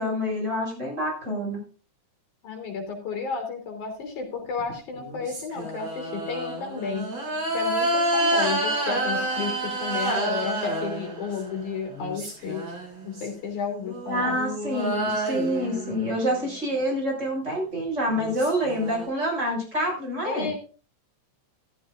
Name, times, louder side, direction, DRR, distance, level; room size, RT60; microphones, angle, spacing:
voice 1, 0.0-1.6 14.1-20.5, equal, 20° right, -2 dB, 6.9 m, -27 dB
voice 2, 2.4-12.7 13.0-14.4 20.2-20.6, left 5 dB, 70° left, 3 dB, 4.6 m, -32 dB
sound 1, 4.6-11.5 11.9-13.3 13.9-16.5 17.8-17.9 18.1-19.1, right 1 dB, 50° right, 7.7 m, -29 dB
14.5 x 14.0 x 2.6 m, 0.37 s
omnidirectional pair, 3.6 m